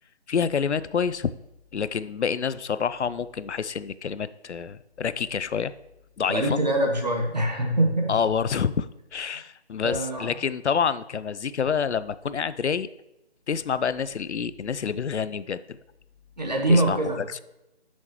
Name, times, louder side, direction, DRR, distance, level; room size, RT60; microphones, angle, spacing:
voice 1, 0.3-1.3 1.7-5.7 6.2-6.6 8.1-12.9 13.5-15.8 16.7-17.4, left 6 dB, 85° left, 15 dB, 0.5 m, -27 dB
voice 2, 6.3-8.2 9.8-10.4 16.4-17.2, right 1 dB, 40° right, 2 dB, 1.3 m, -24 dB
10.5 x 6.3 x 3.0 m, 0.92 s
figure-of-eight pair, 180°, 34 cm